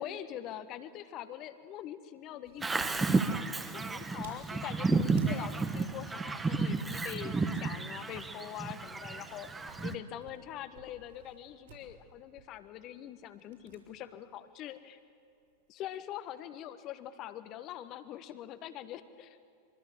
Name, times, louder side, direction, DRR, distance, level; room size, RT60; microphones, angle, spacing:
voice 1, 0.0-9.5 9.8-15.0 15.7-19.5, left 11 dB, 35° left, 12 dB, 1.3 m, -44 dB
sound 1, 2.4-13.8 14.1-14.2 15.4-16.1, right 5 dB, 60° right, 6.5 m, -57 dB
Bird vocalization bird call bird song, 2.6-10.0, right 3 dB, 10° right, 1.3 m, -32 dB
24.5 x 24.0 x 7.6 m, 2.3 s
figure-of-eight pair, 90°, 0 cm